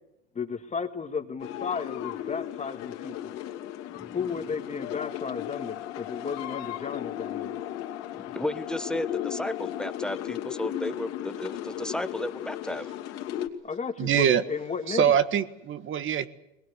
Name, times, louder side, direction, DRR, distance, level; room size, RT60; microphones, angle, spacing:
voice 1, 0.4-3.4 4.1-7.6 13.6-15.1, left 6 dB, 20° left, 7 dB, 1.9 m, -34 dB
sound 1, 1.4-13.5, left 11 dB, 50° left, 2.7 m, -36 dB
sound 2, 5.0-10.0, left 14 dB, 75° left, 2.4 m, -43 dB
voice 2, 8.2-12.9, left 1 dB, ahead, 11 dB, 1.1 m, -33 dB
voice 3, 14.0-14.4 14.9-16.3, right 8 dB, 35° right, 13 dB, 1.6 m, -23 dB
22.0 x 20.5 x 8.2 m, 0.91 s
hypercardioid pair, 105°, 33 cm